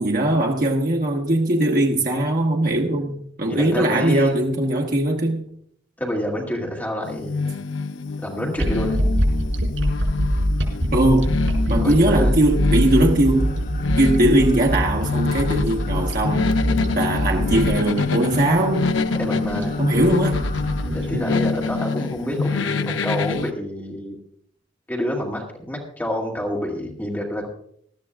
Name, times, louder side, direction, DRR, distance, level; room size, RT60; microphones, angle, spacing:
voice 1, 0.0-5.5 10.9-11.3 11.7-13.5 14.0-16.5 16.9-18.9 19.8-20.4, right 1 dB, 50° right, 1.2 m, -20 dB
voice 2, 3.5-4.4 6.0-7.6 8.2-9.0 11.8-12.3 19.2-19.7 20.9-24.2 24.9-27.5, equal, 10° left, 2.3 m, -28 dB
sound 1, 7.0-23.5, left 4 dB, 85° left, 0.7 m, -26 dB
sound 2, 8.6-21.7, equal, 90° right, 5.3 m, -24 dB
sound 3, 13.4-20.9, left 1 dB, 60° left, 2.8 m, -39 dB
20.0 x 13.0 x 2.4 m
head